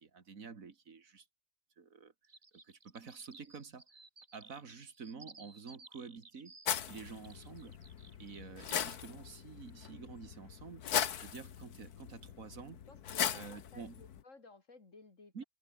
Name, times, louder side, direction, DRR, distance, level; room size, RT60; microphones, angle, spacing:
voice 1, 0.0-1.3 1.8-2.1 2.6-3.9 4.3-6.6 6.9-7.8 8.2-12.8 13.3-14.1 15.3-15.4, right 5 dB, 60° right, 2.4 m, -49 dB
sound 1, 2.2-9.0, right 3 dB, 25° right, 2.0 m, -58 dB
sound 2, 6.7-14.2, left 9 dB, 80° left, 1.6 m, -39 dB
voice 2, 12.9-15.4, left 3 dB, 55° left, 3.3 m, -57 dB
omnidirectional pair, 1.6 m